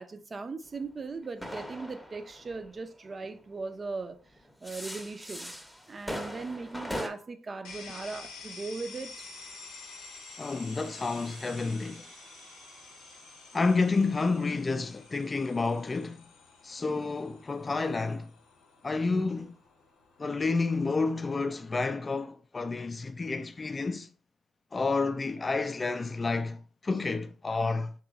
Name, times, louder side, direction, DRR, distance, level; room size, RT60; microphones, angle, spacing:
voice 1, 0.0-4.2 4.6-5.5 5.9-9.3, right 3 dB, 40° right, 0.5 m, -39 dB
sound 1, 0.7-3.5 4.3-7.1, equal, ahead, 0.8 m, -40 dB
sound 2, 7.6-21.3, left 4 dB, 80° left, 0.7 m, -50 dB
sound 3, 8.6-15.5, right 3 dB, 80° right, 1.1 m, -56 dB
voice 2, 10.4-12.0 13.5-16.2 16.6-18.3 18.8-19.5 20.2-24.1 24.7-27.9, left 3 dB, 30° left, 0.3 m, -30 dB
3.1 x 3.0 x 3.5 m
supercardioid pair, 55°, 0 cm